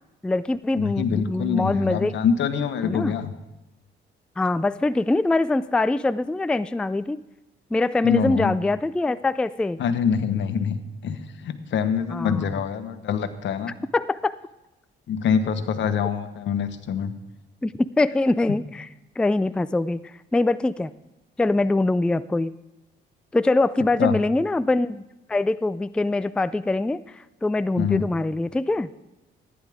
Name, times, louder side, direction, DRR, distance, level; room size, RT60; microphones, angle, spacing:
voice 1, 0.2-2.1 2.8-3.1 4.4-7.2 7.7-9.8 12.1-12.4 13.9-14.4 17.6-18.9 19.2-20.0 20.3-20.9 21.4-22.5 23.3-25.0 25.3-28.9, left 2 dB, 5° left, 14 dB, 0.3 m, -23 dB
voice 2, 0.8-3.3 8.0-8.5 9.8-13.8 15.1-17.1 24.0-24.1 27.8-28.1, left 7 dB, 70° left, 9 dB, 1.2 m, -25 dB
14.5 x 10.0 x 3.6 m, 1.0 s
cardioid pair, 90°, 20 cm